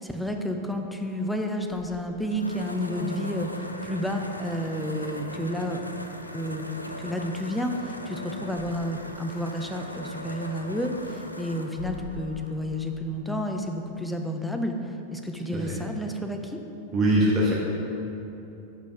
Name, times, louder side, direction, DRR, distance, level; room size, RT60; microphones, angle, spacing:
voice 1, 0.0-5.8 6.3-6.7 7.0-14.8 15.1-16.6, equal, ahead, 3 dB, 0.6 m, -30 dB
sound 1, 1.6-13.4, left 1 dB, 85° left, 0.4 m, -40 dB
voice 2, 16.9-17.5, right 1 dB, 25° right, -4 dB, 1.0 m, -22 dB
6.6 x 5.2 x 4.9 m, 3.0 s
figure-of-eight pair, 90°, 0 cm